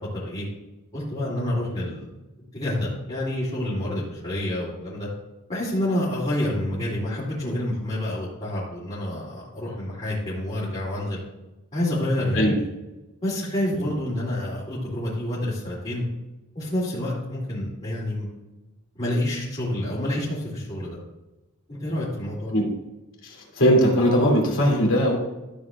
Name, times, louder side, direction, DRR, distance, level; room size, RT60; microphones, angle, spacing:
voice 1, 0.1-0.5 0.9-2.1 2.5-5.1 5.5-11.2 11.7-12.6 13.2-16.0 16.5-18.3 18.9-21.0 21.7-22.5, left 1 dB, 30° left, -9 dB, 2.8 m, -28 dB
voice 2, 23.2-25.2, equal, 60° left, -2 dB, 2.8 m, -20 dB
13.5 x 7.8 x 2.5 m, 1.0 s
head